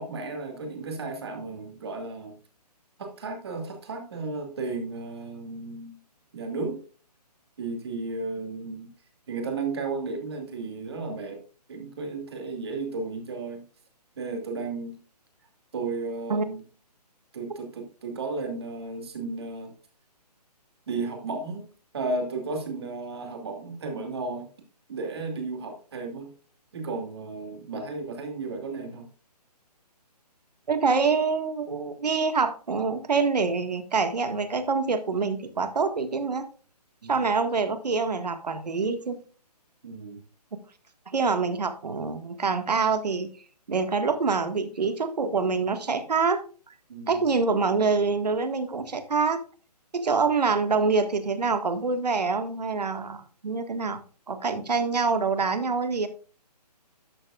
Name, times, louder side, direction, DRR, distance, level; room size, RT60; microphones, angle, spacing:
voice 1, 0.0-2.3 3.0-6.0 6.3-6.8 7.6-8.9 9.3-11.4 11.7-13.6 14.2-14.9 15.7-16.6 17.3-19.7 20.9-21.7 21.9-24.5 24.9-26.3 26.7-29.1 37.0-37.3 39.8-40.2 46.9-47.3, right 3 dB, 40° right, 4 dB, 2.6 m, -34 dB
voice 2, 30.7-36.5 37.1-39.2 41.1-43.3 43.7-46.4 47.1-49.4 49.9-54.0 54.3-56.1, right 4 dB, 75° right, 9 dB, 1.8 m, -25 dB
12.0 x 8.9 x 2.4 m, 0.38 s
hypercardioid pair, 175°, 21 cm